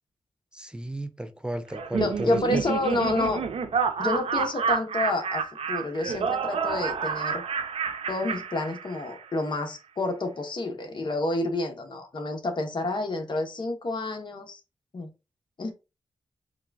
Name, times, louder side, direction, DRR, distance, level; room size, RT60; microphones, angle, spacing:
voice 1, 0.5-2.6, right 1 dB, 10° right, 0.4 m, -33 dB
Laughter, 1.7-9.2, right 6 dB, 70° right, 0.6 m, -29 dB
voice 2, 2.0-3.4 4.0-7.4 8.1-14.6 14.9-15.1 15.6-15.7, left 2 dB, 50° left, 1.0 m, -29 dB
3.8 x 2.3 x 3.4 m
wide cardioid pair, 95°, 10 cm